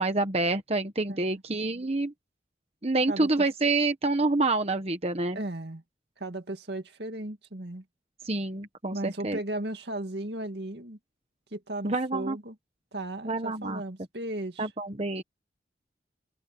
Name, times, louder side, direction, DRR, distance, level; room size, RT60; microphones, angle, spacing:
voice 1, 0.0-2.1 2.8-5.4 8.2-9.4 11.8-12.4 13.2-13.8 14.6-15.2, right 2 dB, 35° right, 1.1 m, -27 dB
voice 2, 1.1-1.4 3.1-3.4 5.3-5.8 6.2-7.8 8.9-11.0 11.5-12.6 12.9-14.7, right 1 dB, 65° right, 2.2 m, -36 dB
open air
head